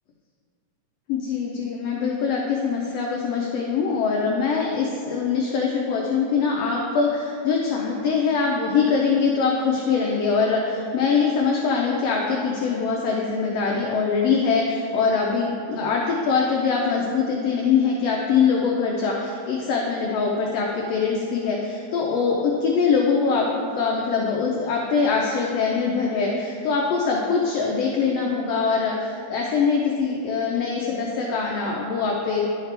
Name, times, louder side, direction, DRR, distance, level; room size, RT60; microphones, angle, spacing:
voice 1, 1.1-32.5, left 5 dB, 75° left, -2 dB, 1.6 m, -23 dB
11.0 x 5.8 x 3.3 m, 2.7 s
omnidirectional pair, 3.3 m